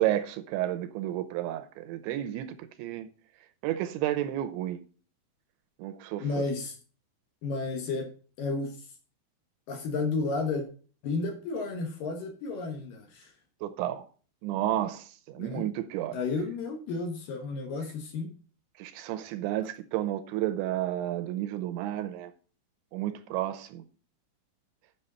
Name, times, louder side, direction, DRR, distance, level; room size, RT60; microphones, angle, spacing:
voice 1, 0.0-3.1 3.6-4.8 5.8-6.5 13.6-14.1 14.4-16.2 18.8-22.3 22.9-23.8, right 13 dB, 80° right, 2.8 m, -31 dB
voice 2, 6.2-6.8 7.4-8.1 8.4-9.0 9.7-10.7 11.0-13.3 15.4-15.6 16.1-18.3, left 3 dB, 70° left, 2.1 m, -32 dB
8.8 x 6.4 x 5.5 m
omnidirectional pair, 5.7 m